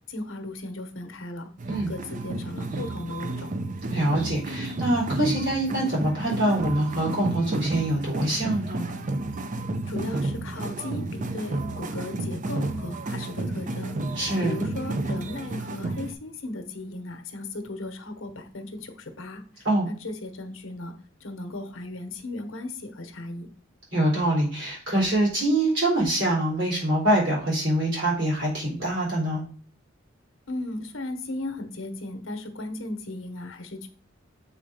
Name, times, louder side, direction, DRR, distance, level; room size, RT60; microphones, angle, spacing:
voice 1, 0.1-1.5 1.9-3.5 9.9-11.1 11.3-14.0 14.4-19.4 19.9-20.9 21.2-23.5 30.5-33.9, left 2 dB, 75° left, 7 dB, 1.0 m, -36 dB
sound 1, 1.6-16.1, right 2 dB, 40° right, 0.6 m, -31 dB
voice 2, 3.9-8.8 14.2-14.5 19.6-19.9 23.9-29.4, right 1 dB, 65° right, -5 dB, 3.9 m, -24 dB
7.1 x 3.8 x 4.9 m, 0.44 s
head